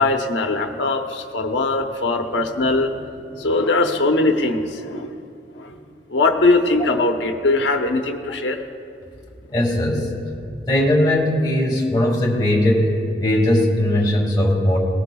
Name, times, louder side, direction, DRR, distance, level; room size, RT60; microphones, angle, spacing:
voice 1, 0.0-5.2 5.5-5.8 6.1-8.6, left 2 dB, 85° left, 4 dB, 0.9 m, -21 dB
voice 2, 9.5-10.1 10.7-14.8, left 1 dB, 25° left, -1 dB, 2.1 m, -19 dB
18.5 x 18.5 x 2.3 m, 2.4 s
head